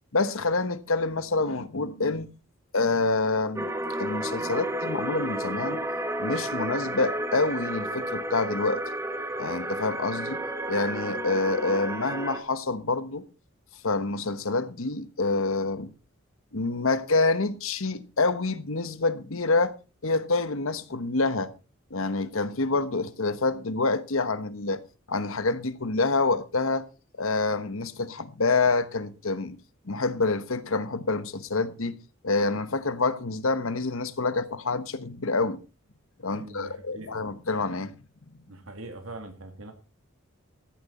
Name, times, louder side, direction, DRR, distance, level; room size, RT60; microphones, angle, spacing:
voice 1, 0.1-2.3 2.7-3.7 4.0-5.8 6.2-8.8 9.4-10.4 10.7-13.2 13.8-15.9 16.5-19.7 20.0-21.5 21.9-24.8 25.1-26.8 27.2-29.6 29.9-32.0 32.2-35.6 36.2-37.9, left 3 dB, 70° left, 1.1 m, -27 dB
sound 1, 3.6-12.4, right 1 dB, 15° right, 1.2 m, -32 dB
voice 2, 36.3-37.2 38.5-39.7, right 2 dB, 70° right, 2.8 m, -42 dB
14.5 x 11.0 x 4.3 m
head